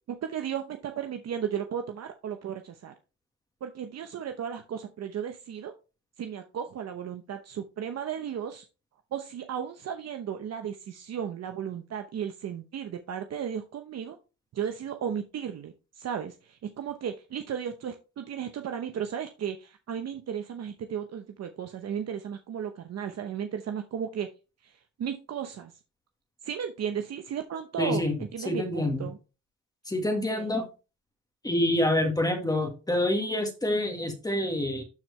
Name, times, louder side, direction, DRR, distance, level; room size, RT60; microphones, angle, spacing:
voice 1, 0.3-2.9 3.6-5.7 6.2-8.6 9.1-14.2 14.5-24.3 24.6-25.7 26.4-29.2 30.1-30.5, right 8 dB, 60° right, 6 dB, 0.9 m, -35 dB
voice 2, 27.8-29.0 29.9-30.7 31.4-34.8, left 1 dB, 10° left, 3 dB, 1.7 m, -27 dB
11.5 x 4.5 x 3.3 m, 0.31 s
cardioid pair, 90°, 30 cm